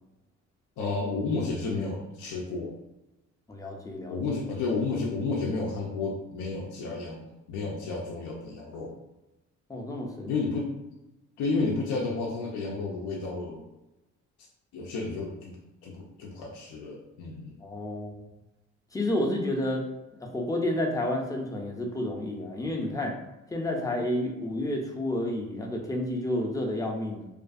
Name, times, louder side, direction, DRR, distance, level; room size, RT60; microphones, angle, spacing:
voice 1, 0.8-2.7 4.1-9.0 10.3-10.7 11.4-13.6 14.7-15.6 15.8-17.6, left 3 dB, 75° left, -1 dB, 0.5 m, -31 dB
voice 2, 3.5-4.2 9.7-10.3 17.6-18.2 18.9-19.9 20.2-23.1 23.5-27.3, left 1 dB, 10° left, 0 dB, 0.5 m, -30 dB
2.5 x 2.4 x 2.4 m, 0.96 s
cardioid pair, 90°, 30 cm